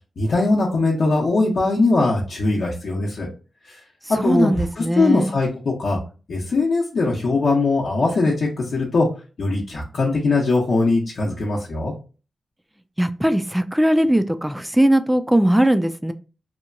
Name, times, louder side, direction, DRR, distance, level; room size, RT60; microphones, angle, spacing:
voice 1, 0.2-3.3 3.7-3.8 4.1-6.0 6.3-9.1 9.4-11.9, left 3 dB, 65° left, -4 dB, 0.7 m, -21 dB
voice 2, 4.2-5.3 13.0-16.1, right 1 dB, 10° right, 10 dB, 0.3 m, -19 dB
2.8 x 2.2 x 2.5 m, 0.34 s
cardioid pair, 60°, 0 cm